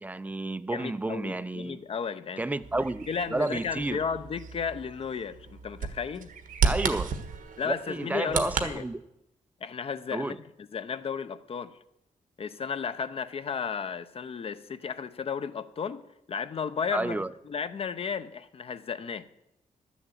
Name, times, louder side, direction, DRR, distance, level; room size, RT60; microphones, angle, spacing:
voice 1, 0.0-1.8 2.4-4.0 6.6-7.1 7.6-9.0 10.1-10.4 16.9-17.3, right 2 dB, 10° right, 0.4 m, -31 dB
voice 2, 0.7-2.4 3.1-6.3 7.6-8.8 9.6-11.8 12.4-16.0 16.3-19.2, left 6 dB, 45° left, 0.7 m, -34 dB
Bird vocalization bird call bird song, 2.6-8.7, right 5 dB, 75° right, 1.4 m, -33 dB
12.5 x 7.2 x 8.4 m
wide cardioid pair, 145°, 14 cm